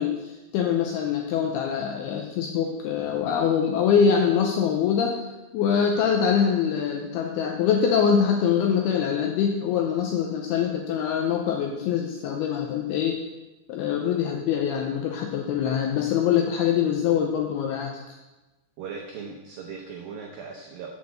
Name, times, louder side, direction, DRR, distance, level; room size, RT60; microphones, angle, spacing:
voice 1, 0.0-5.1 5.5-13.2 13.7-18.2, left 7 dB, 90° left, 1 dB, 2.3 m, -24 dB
voice 2, 18.8-20.9, right 6 dB, 85° right, 1 dB, 2.0 m, -38 dB
8.0 x 4.7 x 6.9 m, 1.1 s
omnidirectional pair, 5.2 m